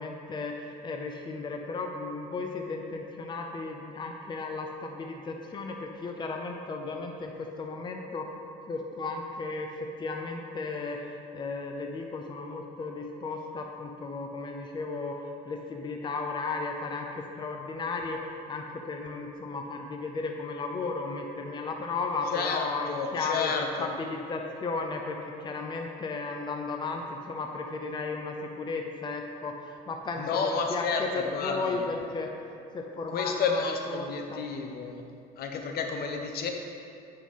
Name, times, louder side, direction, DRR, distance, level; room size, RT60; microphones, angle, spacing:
voice 1, 0.0-8.3 8.7-32.3 32.7-34.4, left 3 dB, 25° left, 3 dB, 0.6 m, -35 dB
voice 2, 22.3-23.9 30.2-31.8 33.1-35.0 35.4-36.5, left 5 dB, 65° left, 3 dB, 0.9 m, -31 dB
9.3 x 5.6 x 4.2 m, 2.5 s
cardioid pair, 110°, 17 cm